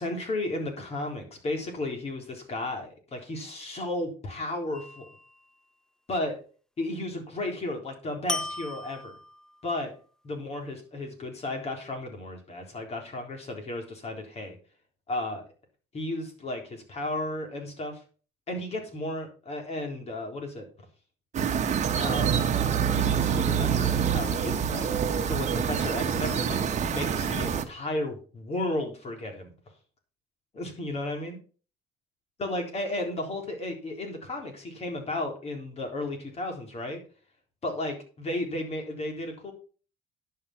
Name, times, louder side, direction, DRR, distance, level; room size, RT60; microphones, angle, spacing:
voice 1, 0.0-5.1 6.1-6.4 6.8-9.1 9.6-9.9 10.2-14.6 15.1-15.4 15.9-18.0 18.5-20.7 21.9-22.4 22.9-24.9 25.2-26.6 26.9-29.5 30.5-31.4 32.4-37.0 37.6-39.5, left 1 dB, 40° left, 3 dB, 3.7 m, -34 dB
sound 1, 4.7-5.4 8.3-9.7, left 2 dB, 5° left, 0.5 m, -36 dB
sound 2, 21.3-27.6, right 7 dB, 45° right, 1.3 m, -26 dB
11.0 x 5.7 x 5.8 m, 0.39 s
cardioid pair, 110°, 17 cm